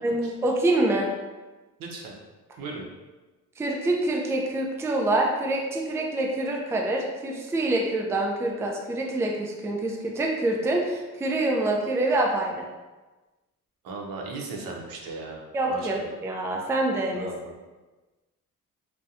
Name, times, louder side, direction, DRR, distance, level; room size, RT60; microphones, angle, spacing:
voice 1, 0.0-1.1 3.6-12.7 15.5-17.3, right 2 dB, 10° right, 0 dB, 0.3 m, -26 dB
voice 2, 1.8-2.1 2.6-2.8 13.8-15.4 15.7-16.1 17.1-17.5, right 3 dB, 80° right, 0 dB, 0.6 m, -37 dB
2.7 x 2.1 x 2.3 m, 1.2 s
cardioid pair, 75°, 34 cm